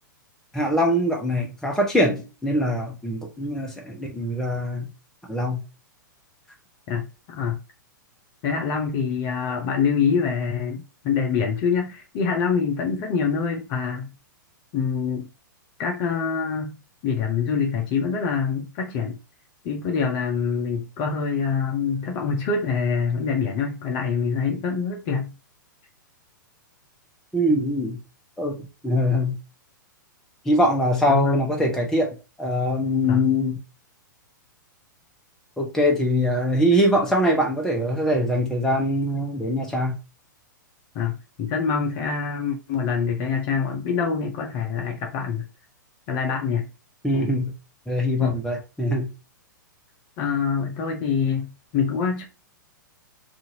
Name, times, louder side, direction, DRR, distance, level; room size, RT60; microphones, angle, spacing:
voice 1, 0.5-4.9 5.3-5.6 27.3-28.0 28.4-29.4 30.4-33.6 35.6-40.0 47.0-47.5 47.9-49.1, equal, 5° left, 0.8 m, -23 dB
voice 2, 6.9-7.6 8.4-14.1 14.7-15.3 15.8-19.2 19.6-25.3 31.1-31.3 33.1-33.2 40.9-45.5 46.1-46.7 47.1-47.3 48.2-48.4 50.2-52.2, left 6 dB, 35° left, 0.6 m, -25 dB
2.7 x 2.5 x 2.8 m
figure-of-eight pair, 110°, 11 cm